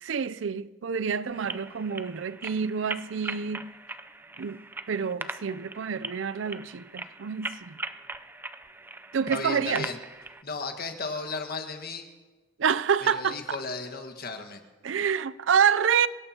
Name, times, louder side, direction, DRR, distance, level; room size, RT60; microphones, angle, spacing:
voice 1, 0.0-3.7 4.4-4.6 4.9-7.8 9.1-9.9 12.6-13.6 14.8-16.1, right 7 dB, 80° right, 0.5 m, -27 dB
sound 1, 1.3-10.4, right 2 dB, 10° right, 0.4 m, -40 dB
voice 2, 9.3-10.0 10.4-12.1 13.0-14.6, left 3 dB, 55° left, 1.6 m, -35 dB
27.0 x 17.0 x 2.9 m
head